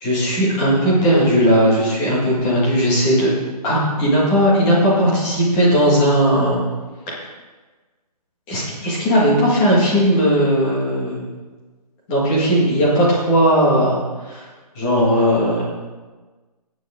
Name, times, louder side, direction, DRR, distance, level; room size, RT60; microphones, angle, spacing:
voice 1, 0.0-3.3 3.6-6.6 7.1-7.2 8.5-11.3 12.1-14.0 14.3-14.5 14.8-15.6, equal, 10° left, -6 dB, 1.8 m, -17 dB
16.0 x 9.5 x 3.7 m, 1.3 s
hypercardioid pair, 180°, 21 cm